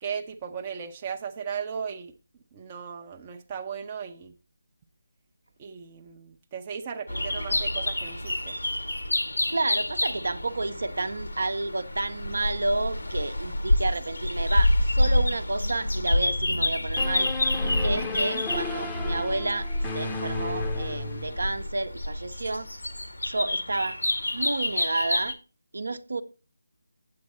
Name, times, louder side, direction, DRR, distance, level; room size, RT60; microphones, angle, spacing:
voice 1, 0.0-2.1 2.5-4.4 5.6-8.6 18.3-18.5, right 7 dB, 20° right, 0.7 m, -36 dB
sound 1, 7.1-25.3, left 1 dB, 75° left, 1.6 m, -28 dB
voice 2, 9.5-17.3 17.8-19.7 19.9-22.7 23.2-24.0 24.3-25.3 25.7-26.2, right 2 dB, 60° right, 0.8 m, -30 dB
sound 2, 17.0-21.6, left 3 dB, 10° left, 0.8 m, -35 dB
8.6 x 7.8 x 4.2 m
figure-of-eight pair, 155°, 0 cm